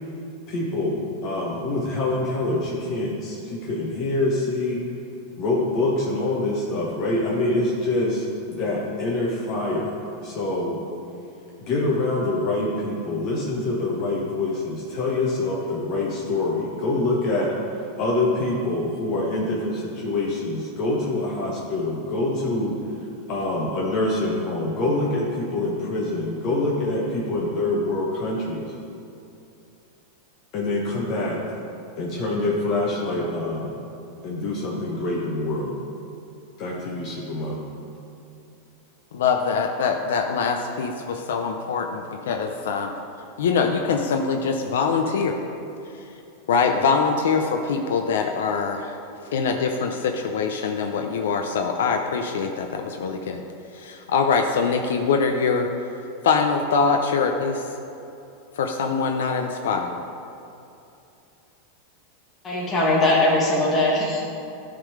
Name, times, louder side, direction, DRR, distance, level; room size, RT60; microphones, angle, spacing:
voice 1, 0.5-4.8 5.4-10.0 10.2-10.8 11.6-22.8 23.3-28.7 30.5-31.4 32.0-33.7 34.2-35.7 36.6-37.6, left 2 dB, 50° left, -4 dB, 1.2 m, -25 dB
voice 2, 39.1-42.9 43.4-45.4 46.5-49.0 49.3-53.4 53.7-55.7 56.2-57.7 58.6-60.0, left 5 dB, 80° left, 4 dB, 0.5 m, -23 dB
voice 3, 62.4-64.2, left 2 dB, 25° left, -5 dB, 1.5 m, -20 dB
10.5 x 3.7 x 4.9 m, 2.7 s
hypercardioid pair, 115°, 0 cm